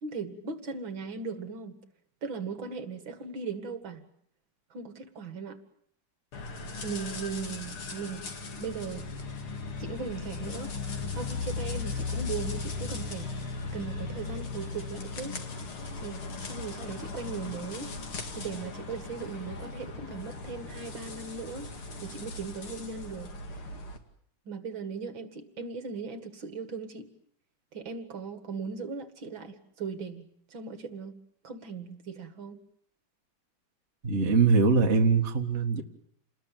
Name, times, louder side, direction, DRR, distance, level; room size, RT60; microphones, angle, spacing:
voice 1, 0.0-1.8 2.2-4.1 4.7-5.6 6.8-8.2 8.6-9.1 9.8-10.7 11.1-13.3 13.7-15.4 16.0-17.9 18.4-21.7 22.0-23.3 24.5-27.1 27.7-31.1 31.4-32.6, right 5 dB, 60° right, 9 dB, 2.7 m, -38 dB
sound 1, 6.3-24.0, left 4 dB, 75° left, 3.3 m, -37 dB
voice 2, 34.0-35.8, right 4 dB, 30° right, 3 dB, 2.0 m, -22 dB
28.5 x 20.5 x 9.1 m, 0.66 s
omnidirectional pair, 2.4 m